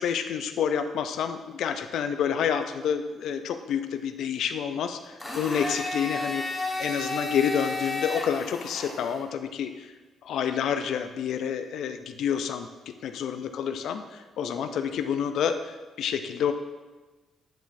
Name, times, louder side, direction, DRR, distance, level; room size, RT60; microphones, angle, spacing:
voice 1, 0.0-6.4 6.8-9.9 10.2-12.7 13.0-16.5, left 8 dB, 75° left, 9 dB, 0.4 m, -28 dB
Domestic sounds home sounds, 5.2-9.2, left 2 dB, 10° left, 1.2 m, -32 dB
9.1 x 5.0 x 2.6 m, 1.2 s
cardioid pair, 90°, 0 cm